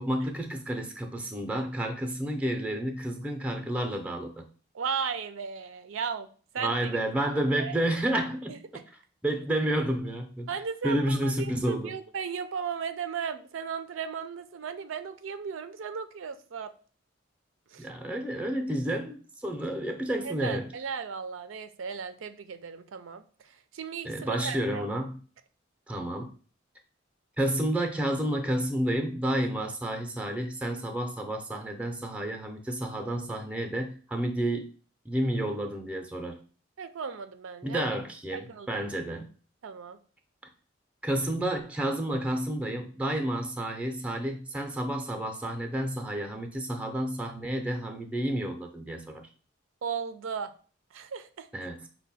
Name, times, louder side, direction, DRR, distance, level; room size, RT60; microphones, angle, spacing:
voice 1, 0.0-4.4 6.6-8.5 9.2-10.5 10.8-12.0 17.8-20.7 24.0-25.2 25.9-26.3 27.4-34.7 35.1-36.4 37.6-39.3 41.0-49.2 51.5-51.9, right 1 dB, 5° right, 4 dB, 0.5 m, -30 dB
voice 2, 4.7-6.3 6.5-6.9 7.6-7.8 8.5-8.6 10.5-16.7 17.7-17.9 20.2-23.2 23.7-24.9 36.8-37.9 38.3-38.9 39.6-40.0 49.8-50.5 50.9-51.5, right 6 dB, 90° right, 10 dB, 0.5 m, -36 dB
5.4 x 2.2 x 4.1 m, 0.40 s
head